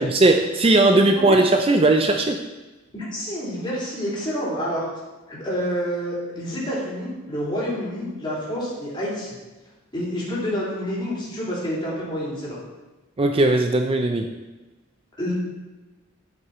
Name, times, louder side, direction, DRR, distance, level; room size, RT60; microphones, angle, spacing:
voice 1, 0.0-2.4 13.2-14.3, right 2 dB, 30° right, 5 dB, 0.5 m, -18 dB
voice 2, 0.9-1.4 2.9-4.8 5.3-9.4 9.9-12.6 15.2-15.3, equal, 25° left, -7 dB, 3.5 m, -28 dB
10.5 x 6.6 x 4.3 m, 1.1 s
head